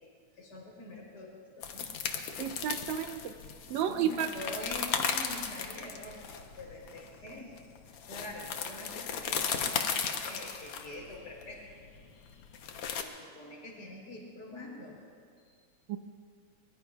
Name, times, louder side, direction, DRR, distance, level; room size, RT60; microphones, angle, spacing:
voice 1, 0.0-2.5 3.7-7.5 8.1-11.6 12.1-12.4 13.0-15.0 15.4-15.5, left 1 dB, 35° left, -2 dB, 4.2 m, -45 dB
sound 1, 1.6-13.0, left 7 dB, 65° left, 1.6 m, -36 dB
voice 2, 2.4-3.3 3.7-4.3 15.9-16.0, right 9 dB, 75° right, 9 dB, 1.8 m, -31 dB
23.5 x 22.5 x 2.4 m, 2.1 s
omnidirectional pair, 3.5 m